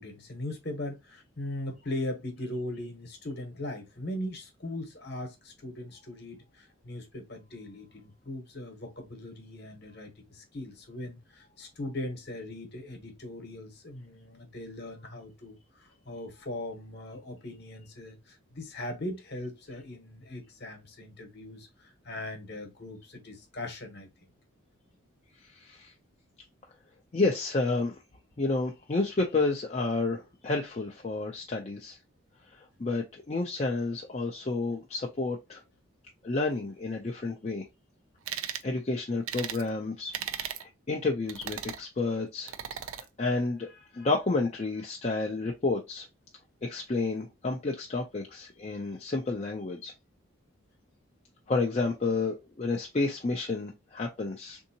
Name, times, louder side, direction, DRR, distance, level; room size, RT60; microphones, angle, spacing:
voice 1, 0.0-24.1, left 1 dB, 50° left, 1.0 m, -39 dB
voice 2, 25.4-25.9 27.1-28.0 28.4-32.0 32.5-35.6 36.2-37.7 38.6-40.1 40.4-42.5 43.2-46.1 46.6-49.9 51.5-54.6, left 3 dB, 30° left, 0.4 m, -30 dB
sound 1, 38.3-38.7 39.3-39.6 40.1-40.6 41.3-41.8 42.5-43.0, right 9 dB, 80° right, 0.5 m, -36 dB
3.6 x 2.7 x 2.7 m
head